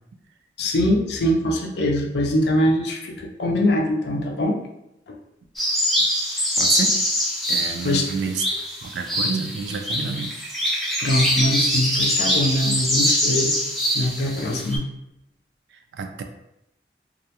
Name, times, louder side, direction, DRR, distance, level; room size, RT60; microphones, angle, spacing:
voice 1, 0.6-4.6 5.1-5.2 7.8-8.1 11.0-13.6 13.9-14.9, left 1 dB, 75° left, 0 dB, 0.4 m, -22 dB
sound 1, 5.6-14.8, equal, ahead, 0.3 m, -23 dB
voice 2, 6.6-7.0 7.5-8.5 8.8-10.3 15.9-16.2, right 5 dB, 80° right, 6 dB, 0.3 m, -29 dB
2.3 x 2.1 x 2.8 m, 0.85 s
head